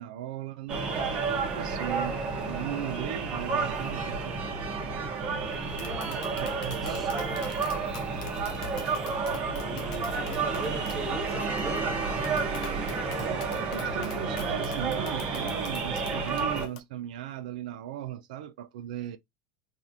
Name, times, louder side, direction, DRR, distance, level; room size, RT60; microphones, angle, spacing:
voice 1, 0.0-4.3 6.1-7.0 13.2-19.2, right 12 dB, 85° right, 0.4 m, -38 dB
sound 1, 0.7-16.7, right 4 dB, 30° right, 0.9 m, -31 dB
voice 2, 3.7-4.4 5.5-9.2 9.6-11.9, right 1 dB, ahead, 1.2 m, -42 dB
Tap, 5.5-16.8, left 7 dB, 75° left, 0.6 m, -46 dB
3.3 x 2.5 x 2.7 m
supercardioid pair, 165°, 4 cm